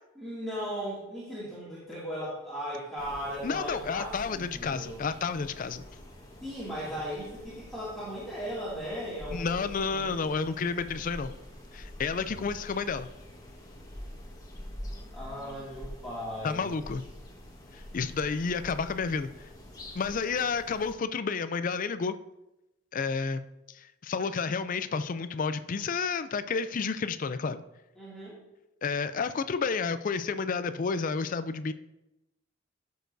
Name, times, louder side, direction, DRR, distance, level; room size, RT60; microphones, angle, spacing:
voice 1, 0.2-5.0 6.4-10.3 15.1-16.8 28.0-28.4, equal, ahead, -11 dB, 2.3 m, -37 dB
sound 1, 3.0-20.9, left 1 dB, 20° left, 1.4 m, -46 dB
voice 2, 3.4-5.8 9.3-11.3 11.7-13.1 16.4-17.0 17.7-19.5 19.9-22.1 22.9-27.6 28.8-31.7, left 5 dB, 40° left, 12 dB, 0.4 m, -31 dB
13.5 x 6.5 x 2.7 m, 0.94 s
head